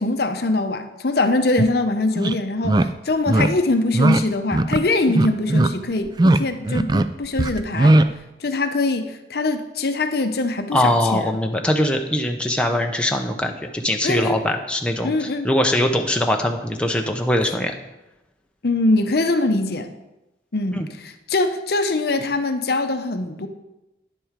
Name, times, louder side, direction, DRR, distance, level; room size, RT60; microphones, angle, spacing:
voice 1, 0.0-8.0 8.4-11.3 14.0-14.4 15.0-15.5 18.6-19.9 20.5-23.5, left 2 dB, 55° left, 8 dB, 0.7 m, -22 dB
sound 1, 1.6-1.7 2.2-2.3 2.6-2.9 3.3-3.5 3.9-4.2 4.5-4.8 5.1-5.7 6.1-6.4 6.7-7.1 7.4-8.1, right 2 dB, 20° right, 0.3 m, -17 dB
voice 2, 10.7-17.7 20.7-20.9, left 1 dB, 5° left, 3 dB, 0.7 m, -22 dB
10.0 x 7.6 x 5.1 m, 0.96 s
head